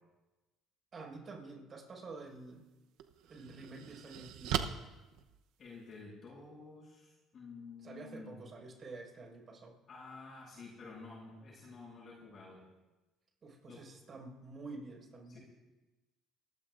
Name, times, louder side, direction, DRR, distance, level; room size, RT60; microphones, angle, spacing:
voice 1, 0.9-2.6 3.3-4.7 7.8-9.8 13.4-15.4, right 3 dB, 40° right, -1 dB, 5.2 m, -49 dB
sound 1, 2.3-2.4 3.0-6.0, right 9 dB, 80° right, 0.8 m, -39 dB
voice 2, 5.6-8.4 9.9-12.6 13.6-13.8 15.3-15.4, left 4 dB, 45° left, -5 dB, 7.0 m, -51 dB
28.5 x 15.0 x 2.6 m, 1.1 s
cardioid pair, 95°, 0 cm